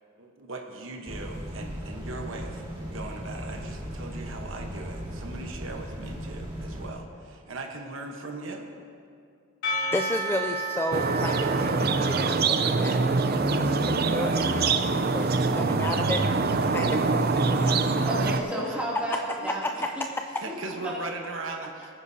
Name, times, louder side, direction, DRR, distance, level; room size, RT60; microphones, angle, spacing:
voice 1, 0.2-8.6 18.6-18.7 19.3-19.5 20.4-21.9, right 3 dB, 70° right, 2 dB, 1.1 m, -39 dB
sound 1, 1.1-6.9, equal, 25° right, 2.2 m, -37 dB
Percussion / Church bell, 9.6-14.2, right 1 dB, 70° left, 3.0 m, -34 dB
voice 2, 9.9-18.1 19.6-19.7, left 1 dB, 10° left, 4 dB, 0.3 m, -33 dB
sound 2, 10.9-18.4, right 3 dB, 50° right, 0.6 m, -24 dB
voice 3, 18.1-19.8 20.5-21.0, equal, 5° right, -6 dB, 2.7 m, -32 dB
22.5 x 9.8 x 2.8 m, 2.4 s
head